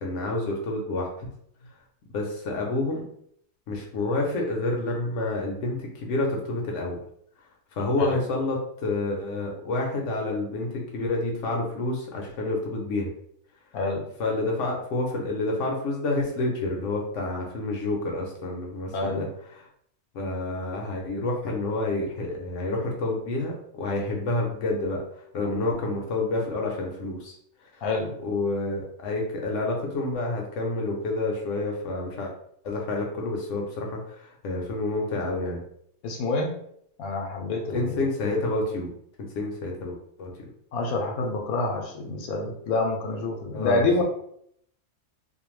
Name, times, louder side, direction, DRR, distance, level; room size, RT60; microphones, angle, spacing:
voice 1, 0.0-1.3 2.1-3.0 3.7-7.0 7.8-13.1 14.2-19.6 20.1-25.0 25.3-27.3 28.2-32.3 32.6-35.6 37.7-38.9 39.3-40.4 43.5-44.0, left 2 dB, 65° left, 0 dB, 0.8 m, -29 dB
voice 2, 13.7-14.0 18.9-19.3 27.8-28.1 36.0-36.5 37.0-38.0 40.7-44.0, left 3 dB, 85° left, 0 dB, 1.1 m, -27 dB
2.5 x 2.2 x 3.0 m, 0.69 s
omnidirectional pair, 1.5 m